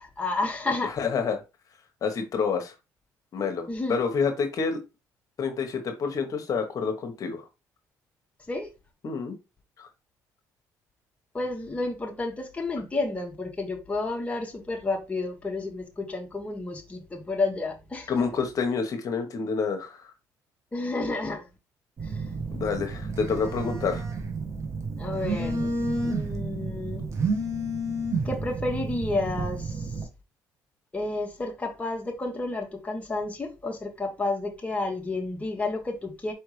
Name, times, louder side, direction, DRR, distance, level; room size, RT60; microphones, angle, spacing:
voice 1, 0.0-0.9 3.7-4.0 8.5-8.7 11.3-18.1 20.7-21.5 22.0-22.2 25.0-27.0 28.2-30.0 30.9-36.3, left 2 dB, 20° left, 1.1 m, -31 dB
voice 2, 0.8-1.4 2.0-2.7 3.3-4.8 5.4-7.4 9.0-9.3 9.8-9.9 18.1-20.0 22.5-24.0, left 5 dB, 50° left, 1.1 m, -28 dB
Telephone, 22.0-30.0, right 2 dB, 45° right, 1.3 m, -30 dB
4.8 x 3.5 x 3.1 m
cardioid pair, 90°, 7 cm